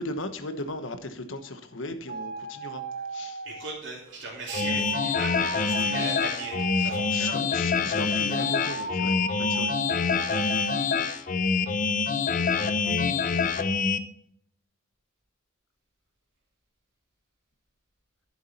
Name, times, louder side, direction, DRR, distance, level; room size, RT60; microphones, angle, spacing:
voice 1, 0.0-2.8 3.1-3.7 6.8-9.7, left 2 dB, 70° left, 9 dB, 1.2 m, -37 dB
sound 1, 2.1-3.8 4.5-7.4 8.3-11.0, right 3 dB, 45° right, 2.3 m, -36 dB
voice 2, 3.4-7.3 10.3-10.5, right 2 dB, 65° right, -5 dB, 2.7 m, -37 dB
sound 2, 4.5-14.0, left 5 dB, 40° left, 0.7 m, -26 dB
11.5 x 7.3 x 4.3 m, 0.70 s
head